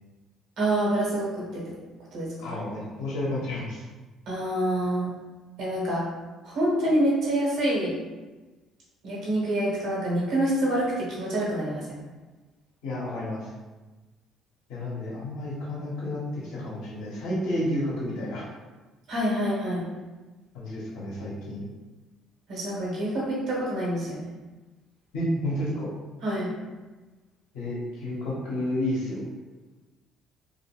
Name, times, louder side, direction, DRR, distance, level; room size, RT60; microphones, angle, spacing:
voice 1, 0.6-1.6 2.1-2.5 4.3-5.1 5.6-6.0 6.4-7.9 9.0-12.0 19.1-19.8 22.5-24.3 26.2-26.5, right 1 dB, 70° right, -6 dB, 1.2 m, -26 dB
voice 2, 2.4-3.8 12.8-13.5 14.7-18.5 20.5-21.7 25.1-25.9 27.5-29.2, left 1 dB, 75° left, -6 dB, 0.8 m, -31 dB
2.4 x 2.3 x 2.9 m, 1.2 s
hypercardioid pair, 60°, 0 cm